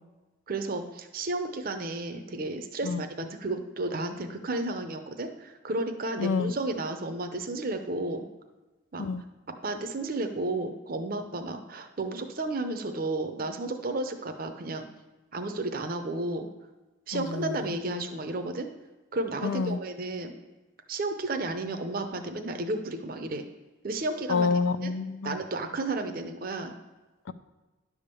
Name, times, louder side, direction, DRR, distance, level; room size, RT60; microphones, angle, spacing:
voice 1, 0.5-8.2 8.9-9.1 9.6-14.9 15.3-16.5 17.1-18.7 19.1-20.3 20.9-23.4 23.8-24.5 24.8-24.9 25.2-26.7, right 2 dB, 45° right, 6 dB, 0.6 m, -32 dB
voice 2, 6.2-6.5 9.0-9.2 17.1-17.5 19.4-19.8 24.3-25.4, left 4 dB, 80° left, 12 dB, 0.5 m, -28 dB
10.5 x 3.6 x 6.8 m, 1.2 s
head